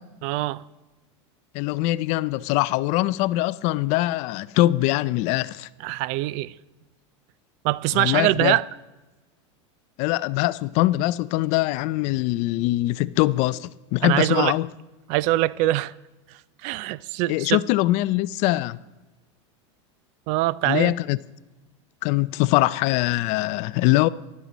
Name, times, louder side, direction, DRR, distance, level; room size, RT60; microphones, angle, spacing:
voice 1, 0.2-0.6 5.8-6.5 7.6-8.6 14.0-14.5 15.1-15.9 16.6-17.6 20.3-20.9, right 17 dB, 50° right, 0.4 m, -23 dB
voice 2, 1.5-5.7 7.9-8.6 10.0-14.7 17.3-18.8 20.6-21.2 22.0-24.1, left 17 dB, 45° left, 0.4 m, -22 dB
14.5 x 12.0 x 4.1 m
supercardioid pair, 135°, 16 cm